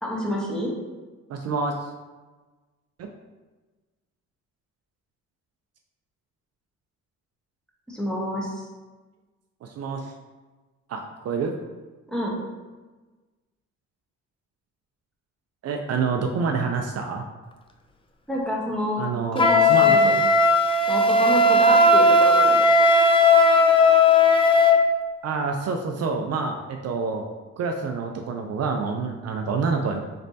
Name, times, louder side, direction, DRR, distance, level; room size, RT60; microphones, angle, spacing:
voice 1, 0.0-0.7 7.9-8.7 12.1-12.4 18.3-19.0 19.3-20.1 20.9-22.6, equal, 5° left, -4 dB, 1.0 m, -28 dB
voice 2, 1.3-1.7 3.0-3.1 9.6-10.1 10.9-11.5 15.6-17.2 19.0-20.2 25.2-27.2 27.6-30.0, right 4 dB, 55° right, 3 dB, 0.5 m, -27 dB
Wind instrument woodwind instrument, 19.4-24.8, left 2 dB, 20° left, 0.4 m, -16 dB
4.2 x 3.2 x 2.7 m, 1.2 s
cardioid pair, 90°, 30 cm